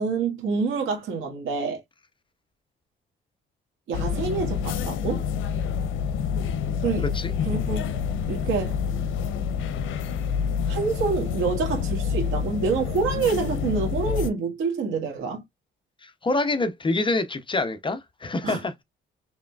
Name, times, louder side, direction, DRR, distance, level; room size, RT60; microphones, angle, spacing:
voice 1, 0.0-1.8 3.9-5.3 6.8-7.1 7.4-7.8 8.3-8.8 10.7-15.4 18.4-18.8, right 5 dB, 85° right, 1.6 m, -27 dB
sound 1, 3.9-14.3, left 7 dB, 80° left, 0.6 m, -27 dB
voice 2, 7.0-7.3 16.0-18.8, left 2 dB, 25° left, 0.6 m, -26 dB
4.7 x 3.2 x 2.3 m
cardioid pair, 90°, 20 cm